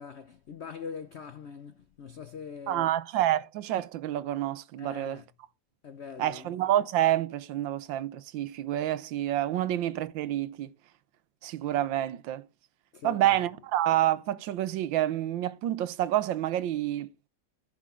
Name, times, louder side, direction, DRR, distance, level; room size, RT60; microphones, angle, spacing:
voice 1, 0.0-2.9 4.8-5.3 5.8-6.5 12.9-13.4, left 6 dB, 85° left, 0.5 m, -42 dB
voice 2, 2.7-5.2 6.2-10.7 11.4-12.5 13.0-17.1, right 13 dB, 80° right, 1.4 m, -28 dB
14.5 x 6.2 x 3.7 m
omnidirectional pair, 2.1 m